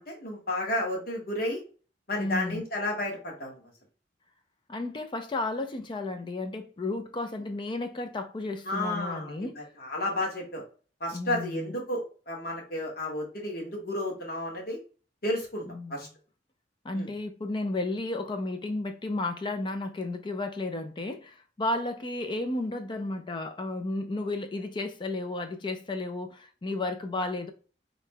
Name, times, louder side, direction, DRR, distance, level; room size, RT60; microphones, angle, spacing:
voice 1, 0.0-1.6 2.1-3.6 8.6-10.6 11.0-14.8 15.2-15.6 15.9-16.1 16.9-17.1, left 1 dB, 60° left, 1.2 m, -32 dB
voice 2, 2.2-2.6 4.7-9.6 11.1-11.7 15.7-16.1 16.8-27.5, left 2 dB, 25° left, 0.4 m, -33 dB
3.7 x 2.1 x 3.5 m
head